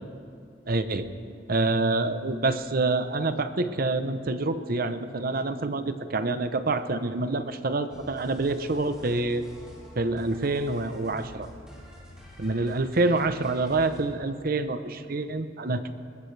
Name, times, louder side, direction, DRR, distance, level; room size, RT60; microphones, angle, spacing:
voice 1, 0.7-1.1 1.5-9.4 10.0-11.5 12.4-15.9, right 2 dB, 55° right, 10 dB, 0.8 m, -27 dB
sound 1, 7.9-14.1, equal, 5° right, 4.6 m, -48 dB
21.0 x 20.5 x 3.3 m, 2.4 s
head